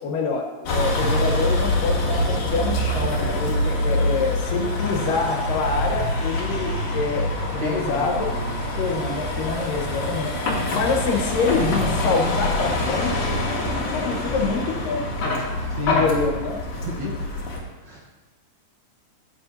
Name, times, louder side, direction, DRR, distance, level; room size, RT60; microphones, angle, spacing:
voice 1, 0.0-7.3 7.5-8.3 8.8-13.4 13.9-15.4 15.8-16.6 17.0-17.1, left 4 dB, 90° left, 2 dB, 2.9 m, -26 dB
Vehicle, 0.7-17.6, left 1 dB, 55° left, 2.6 m, -25 dB
voice 2, 7.6-8.9 15.7-16.1 16.7-17.1 17.8-18.1, equal, 55° right, -2 dB, 1.3 m, -32 dB
14.5 x 8.8 x 2.8 m, 1.2 s
omnidirectional pair, 3.7 m